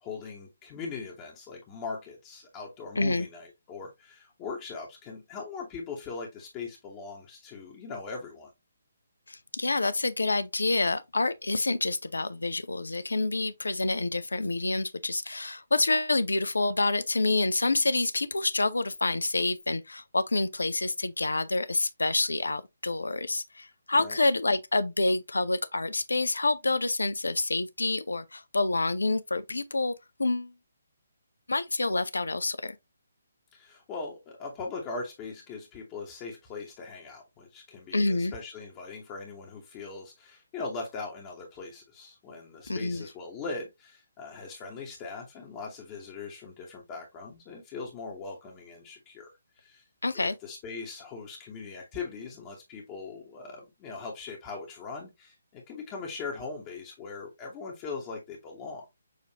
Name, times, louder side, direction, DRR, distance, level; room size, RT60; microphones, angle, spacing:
voice 1, 0.0-8.5 23.9-24.2 33.5-49.8 50.1-58.9, left 4 dB, 20° left, 1.0 m, -40 dB
voice 2, 3.0-3.3 9.3-29.9 30.2-30.5 31.5-32.8 37.9-38.3 42.7-43.1 50.0-50.3, left 2 dB, 70° left, 0.4 m, -27 dB
6.5 x 2.5 x 2.8 m
figure-of-eight pair, 140°, 0 cm